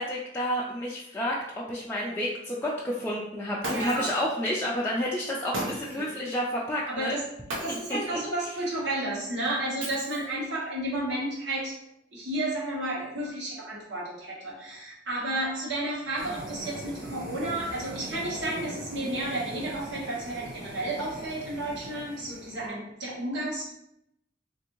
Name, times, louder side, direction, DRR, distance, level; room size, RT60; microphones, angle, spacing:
voice 1, 0.0-7.1 7.7-8.2 22.6-22.8, equal, 10° left, -5 dB, 0.3 m, -30 dB
Shatter, 3.6-4.2 5.5-6.1 7.5-8.1 9.8-10.5, right 1 dB, 90° right, 0.7 m, -35 dB
voice 2, 3.7-4.1 5.9-6.1 6.9-7.2 7.6-11.8 12.1-23.7, right 1 dB, 70° right, -5 dB, 1.1 m, -32 dB
sound 1, 16.2-22.7, right 1 dB, 50° right, 0.7 m, -41 dB
3.4 x 2.5 x 2.9 m, 0.81 s
head